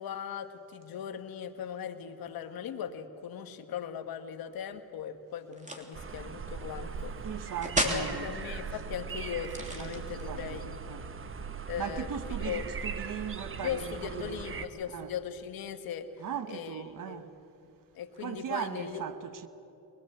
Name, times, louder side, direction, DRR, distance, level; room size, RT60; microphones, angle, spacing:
voice 1, 0.0-7.2 7.8-10.8 11.7-12.1 12.4-12.6 13.6-16.1 16.5-17.2 17.9-19.0, left 8 dB, 85° left, 1.5 m, -39 dB
sound 1, 5.5-6.0 7.6-8.1 9.4-10.3, right 1 dB, 20° right, 3.2 m, -32 dB
sound 2, 5.9-14.7, right 5 dB, 35° right, 1.1 m, -39 dB
voice 2, 7.2-8.3 9.8-10.6 10.9-11.1 11.8-14.7 14.9-15.1 16.2-17.3 18.2-19.5, right 8 dB, 65° right, 1.3 m, -38 dB
23.0 x 21.0 x 7.9 m
cardioid pair, 75°, 35 cm